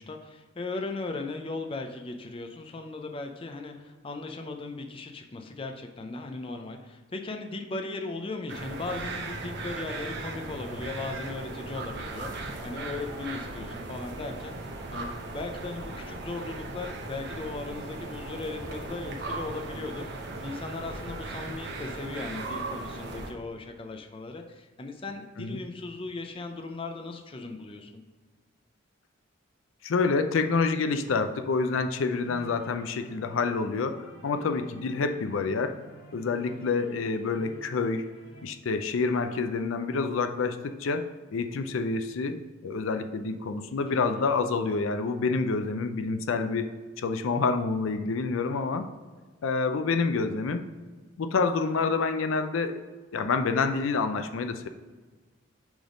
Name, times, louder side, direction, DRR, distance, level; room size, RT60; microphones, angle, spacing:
voice 1, 0.0-14.5 14.9-20.0 20.4-28.0 43.9-44.2, left 3 dB, 25° left, 4 dB, 0.5 m, -37 dB
sound 1, 8.5-23.3, right 2 dB, 55° right, 0.8 m, -37 dB
voice 2, 29.8-35.8 36.1-38.1 38.4-42.4 42.6-46.7 47.0-48.9 49.4-50.6 51.2-52.8 53.1-54.7, left 4 dB, 80° left, 8 dB, 0.4 m, -28 dB
sound 2, 32.2-38.4, right 1 dB, 50° left, 1.7 m, -50 dB
6.2 x 3.5 x 5.0 m, 1.4 s
head